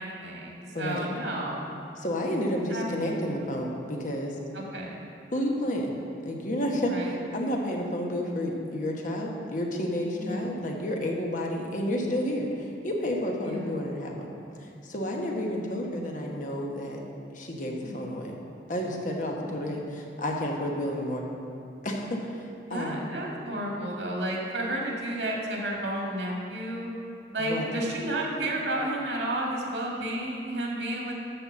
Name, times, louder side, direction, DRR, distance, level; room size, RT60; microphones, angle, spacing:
voice 1, 0.0-1.7 2.7-2.9 3.2-3.5 4.5-5.0 6.9-7.1 10.1-10.6 13.4-13.8 17.8-18.1 19.6-19.7 22.7-26.9 27.3-31.1, right 1 dB, 85° right, -2 dB, 2.1 m, -32 dB
voice 2, 0.7-1.1 2.0-4.4 5.3-5.9 6.2-6.9 7.3-14.3 14.6-17.0 17.3-18.3 18.7-21.2 21.8-23.2 27.4-27.7, left 1 dB, 45° left, 0 dB, 1.2 m, -31 dB
12.5 x 4.2 x 7.4 m, 2.6 s
head